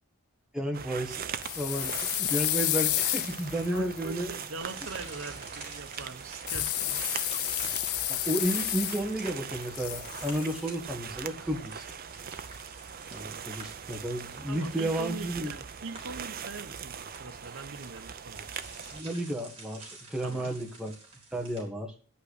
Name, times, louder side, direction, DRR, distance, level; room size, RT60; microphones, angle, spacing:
voice 1, 0.5-1.3 1.5-4.3 8.1-11.8 13.1-15.5 18.9-20.9 21.3-21.9, right 1 dB, 5° right, 1.7 m, -32 dB
sound 1, 0.7-19.0, right 7 dB, 40° right, 0.6 m, -41 dB
sound 2, 1.4-4.5 6.5-9.3 9.5-10.6, left 16 dB, 70° left, 0.5 m, -31 dB
voice 2, 3.7-7.5 14.5-18.5 20.2-20.5, right 3 dB, 60° right, 1.2 m, -42 dB
sound 3, 4.6-21.6, right 3 dB, 25° right, 4.1 m, -50 dB
9.9 x 5.8 x 8.2 m
head